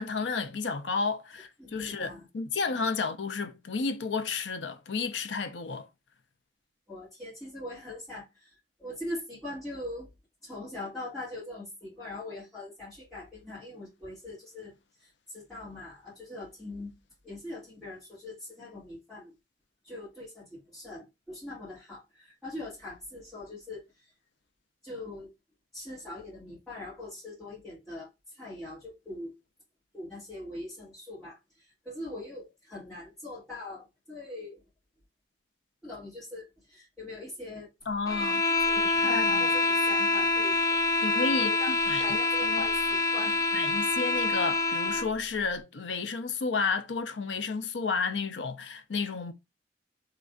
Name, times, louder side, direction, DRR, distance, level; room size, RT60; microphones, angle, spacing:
voice 1, 0.0-5.9 37.9-38.4 38.8-39.5 41.0-42.2 42.4-42.7 43.5-49.3, left 4 dB, 80° left, 0.6 m, -32 dB
voice 2, 1.6-2.3 2.7-2.8 6.9-8.5 8.8-10.1 10.4-14.7 15.0-16.9 17.2-19.3 19.8-24.1 24.8-25.3 25.7-29.3 29.9-34.6 35.8-37.7 38.6-40.6 40.9-41.7 42.0-43.4, left 2 dB, ahead, 2.2 m, -42 dB
sound 1, 38.1-45.1, left 3 dB, 20° left, 0.6 m, -26 dB
3.9 x 3.2 x 2.4 m
head